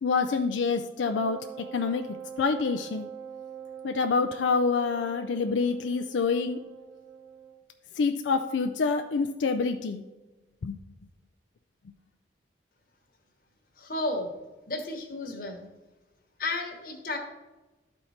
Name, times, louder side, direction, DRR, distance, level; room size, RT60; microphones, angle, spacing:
voice 1, 0.0-2.1 2.4-3.1 3.8-6.6 7.9-10.0 10.6-10.7, left 4 dB, 85° left, 6 dB, 0.4 m, -27 dB
Wind instrument woodwind instrument, 1.0-7.6, right 7 dB, 85° right, 0.8 m, -44 dB
voice 2, 13.8-14.3 14.7-15.6 16.4-17.2, left 2 dB, 50° left, 3 dB, 1.2 m, -32 dB
12.0 x 4.4 x 4.2 m, 1.1 s
head